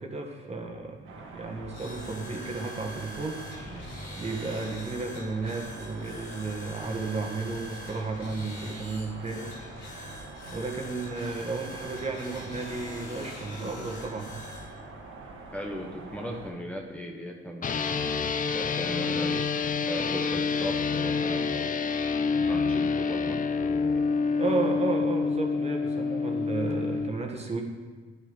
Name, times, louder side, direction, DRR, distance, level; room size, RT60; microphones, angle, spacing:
voice 1, 0.0-10.2 10.5-14.4 24.4-27.6, right 3 dB, 30° right, 2 dB, 1.8 m, -33 dB
sound 1, 1.0-16.5, right 3 dB, 85° right, 2.0 m, -46 dB
sound 2, 1.6-14.7, equal, 65° left, 3.3 m, -43 dB
voice 2, 15.5-17.8 18.5-19.4 19.9-21.8 22.5-24.0, equal, 5° left, 0 dB, 1.3 m, -37 dB
sound 3, 17.6-27.1, left 4 dB, 40° left, 0.7 m, -27 dB
10.0 x 8.2 x 5.4 m, 1.4 s
cardioid pair, 90°, 20 cm